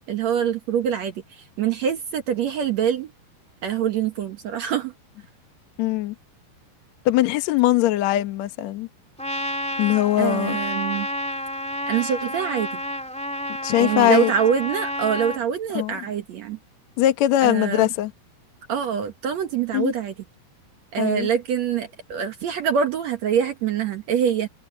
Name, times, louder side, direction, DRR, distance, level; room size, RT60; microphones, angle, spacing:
voice 1, 0.0-3.1 3.6-4.9 10.2-11.1 11.9-12.8 13.8-16.6 17.4-17.9 18.7-20.1 20.9-24.5, right 8 dB, 70° right, 1.6 m, -24 dB
voice 2, 5.8-6.1 7.0-8.9 9.8-10.6 13.6-14.3 15.7-15.9 17.0-18.1 19.7-19.9 21.0-21.3, left 14 dB, 75° left, 1.6 m, -21 dB
Trumpet, 9.2-15.4, equal, ahead, 2.4 m, -30 dB
omnidirectional pair, 5.0 m